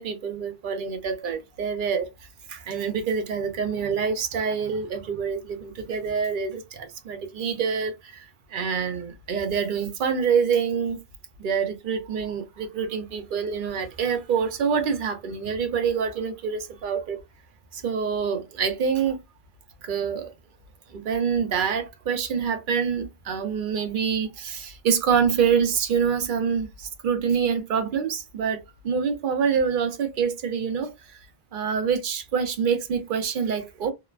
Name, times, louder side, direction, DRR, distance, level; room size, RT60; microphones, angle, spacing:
voice 1, 0.0-2.1 2.5-11.0 11.4-17.2 17.7-19.2 19.8-20.3 20.9-31.2 31.5-33.9, right 6 dB, 60° right, 0.7 m, -26 dB
2.9 x 2.1 x 2.4 m
omnidirectional pair, 1.0 m